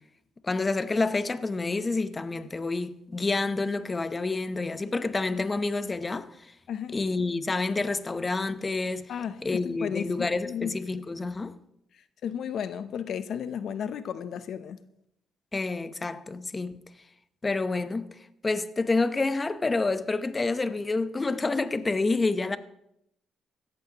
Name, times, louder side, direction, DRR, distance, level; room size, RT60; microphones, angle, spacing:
voice 1, 0.4-6.5 6.9-9.1 9.4-11.5 15.5-16.8 17.4-18.1 18.4-22.6, left 3 dB, 25° left, 0.8 m, -28 dB
voice 2, 9.1-10.8 12.2-14.8, left 8 dB, 65° left, 0.6 m, -33 dB
16.5 x 14.0 x 2.9 m
cardioid pair, 90°, 0 cm